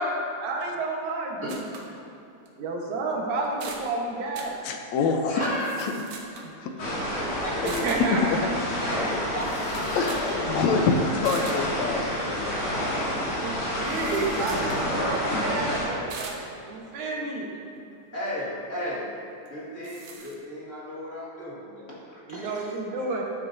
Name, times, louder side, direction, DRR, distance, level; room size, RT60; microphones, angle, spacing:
voice 1, 0.4-1.7 2.6-4.6 6.4-6.5 7.6-8.5 13.4-16.4 16.7-17.5 22.3-23.2, right 3 dB, 85° right, -1 dB, 2.7 m, -30 dB
sound 1, 1.5-1.9 2.5-2.6 3.1-3.2 3.4-3.9 4.4-4.6 5.4-6.5 7.7-8.1 9.1-9.2 9.4-10.4 10.7-10.8 11.3-11.7 13.9-14.9 16.1-16.5 19.5-19.6 19.8-20.3, right 4 dB, 70° right, 2.2 m, -42 dB
voice 2, 4.6-5.4 6.6-6.9 7.6-8.4 10.0-12.5, left 4 dB, 75° left, 3 dB, 1.9 m, -26 dB
voice 3, 5.3-5.7 7.1-7.8 8.5-10.1 18.1-19.1 19.5-22.7, left 1 dB, 30° left, -7 dB, 1.9 m, -35 dB
sound 2, 6.8-15.9, equal, 60° left, 3.4 m, -29 dB
13.5 x 9.4 x 2.7 m, 2.8 s
omnidirectional pair, 3.3 m